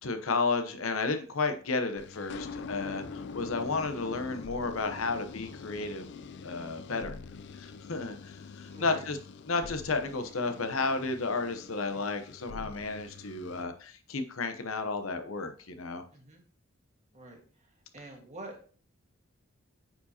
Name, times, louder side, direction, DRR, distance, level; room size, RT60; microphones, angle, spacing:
voice 1, 0.0-6.1 6.4-7.1 7.6-9.2 9.5-16.0, left 3 dB, 80° left, 8 dB, 0.9 m, -32 dB
sound 1, 2.0-13.6, left 4 dB, 55° left, 0.4 m, -45 dB
voice 2, 8.7-9.0 16.1-16.4 17.1-18.7, right 2 dB, 35° right, 1 dB, 1.7 m, -48 dB
9.1 x 4.7 x 2.8 m, 0.42 s
head